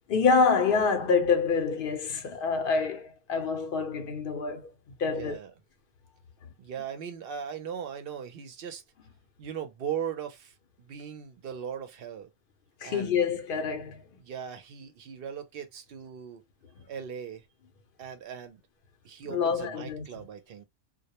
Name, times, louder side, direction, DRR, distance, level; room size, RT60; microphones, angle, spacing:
voice 1, 0.1-4.7 5.0-5.4 12.8-14.0 19.3-20.1, left 5 dB, 55° left, 0.7 m, -26 dB
voice 2, 5.1-5.5 6.6-8.8 9.4-12.3 12.8-13.2 14.2-16.4 16.9-17.4 18.0-18.6 19.0-20.6, right 8 dB, 60° right, 0.7 m, -38 dB
2.1 x 2.1 x 2.8 m
omnidirectional pair, 1.2 m